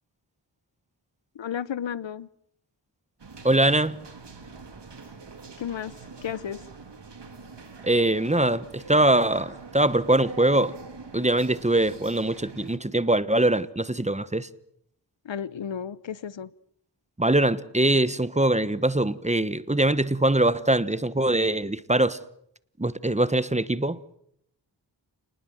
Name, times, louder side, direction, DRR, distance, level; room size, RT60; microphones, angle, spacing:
voice 1, 1.3-2.3 5.6-5.9 6.2-6.6 15.2-16.5, left 8 dB, 75° left, 0.9 m, -33 dB
sound 1, 3.2-12.8, right 4 dB, 65° right, 3.2 m, -44 dB
voice 2, 3.4-4.0 7.8-10.7 11.1-14.5 17.2-22.2 22.8-24.0, right 1 dB, 15° right, 1.2 m, -22 dB
29.0 x 20.0 x 7.8 m
wide cardioid pair, 55°, 45 cm